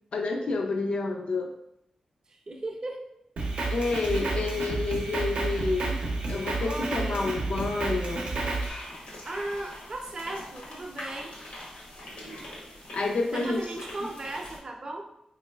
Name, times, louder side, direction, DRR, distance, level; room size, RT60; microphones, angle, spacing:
voice 1, 0.1-1.5 3.7-6.0 6.3-8.3 12.9-13.6, left 3 dB, 60° left, 2 dB, 0.3 m, -29 dB
voice 2, 2.3-3.1 6.6-7.3 9.2-11.3 13.3-15.1, right 2 dB, 35° right, 2 dB, 0.5 m, -36 dB
Drum kit, 3.4-8.7, right 3 dB, 85° right, 0.6 m, -30 dB
sound 1, 8.4-14.6, left 1 dB, 85° left, 1.0 m, -43 dB
3.6 x 3.1 x 2.2 m, 0.80 s
wide cardioid pair, 145°, 2 cm